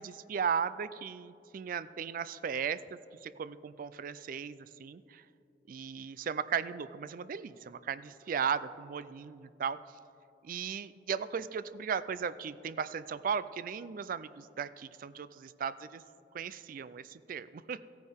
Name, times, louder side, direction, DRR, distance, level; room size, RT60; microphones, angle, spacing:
voice 1, 0.0-5.2 5.7-9.8 10.4-16.0 16.3-17.9, right 7 dB, 50° right, 15 dB, 0.3 m, -36 dB
15.0 x 9.4 x 3.5 m, 2.7 s
head